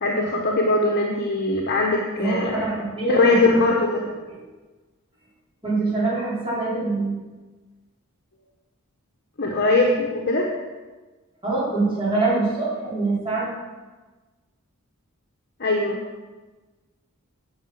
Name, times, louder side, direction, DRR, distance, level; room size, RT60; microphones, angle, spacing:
voice 1, 0.0-2.7 3.1-4.0 9.4-10.5 15.6-16.0, left 2 dB, 50° left, 0 dB, 1.0 m, -21 dB
voice 2, 2.2-3.6 4.0-4.4 5.6-7.2 11.4-13.5, right 2 dB, 25° right, -8 dB, 4.2 m, -24 dB
10.0 x 5.7 x 7.6 m, 1.3 s
head